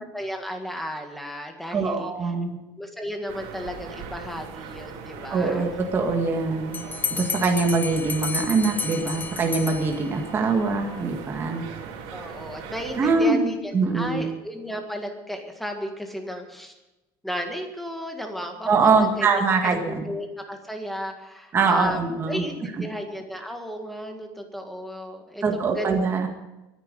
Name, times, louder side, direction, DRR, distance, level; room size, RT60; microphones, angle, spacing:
voice 1, 0.0-2.1 2.8-5.7 6.8-7.0 12.1-16.7 17.2-22.0 22.3-25.9, equal, ahead, 4 dB, 1.8 m, -34 dB
voice 2, 1.7-2.6 5.3-6.8 7.1-11.6 13.0-14.3 18.7-20.1 21.5-22.4 25.4-26.3, right 4 dB, 25° right, 2 dB, 1.8 m, -23 dB
sound 1, 3.3-13.2, right 6 dB, 85° right, 3.4 m, -39 dB
Bell, 6.7-10.4, left 5 dB, 15° left, 0.8 m, -32 dB
23.0 x 10.0 x 5.4 m, 0.98 s
cardioid pair, 175°, 10 cm